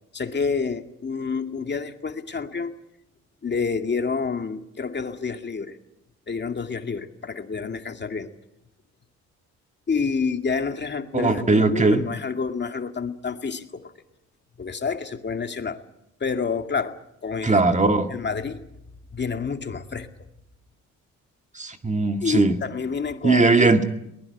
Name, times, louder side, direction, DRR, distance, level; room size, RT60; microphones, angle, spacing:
voice 1, 0.1-2.7 3.4-5.8 6.3-8.3 9.9-13.9 14.6-15.8 16.2-17.6 18.1-18.7 19.1-20.1 22.2-23.7, left 5 dB, 35° left, 6 dB, 2.2 m, -28 dB
voice 2, 11.1-12.0 17.4-18.1 21.6-22.5 23.2-23.8, right 3 dB, 25° right, 7 dB, 2.1 m, -19 dB
22.0 x 20.0 x 9.8 m, 0.82 s
cardioid pair, 90°, 30 cm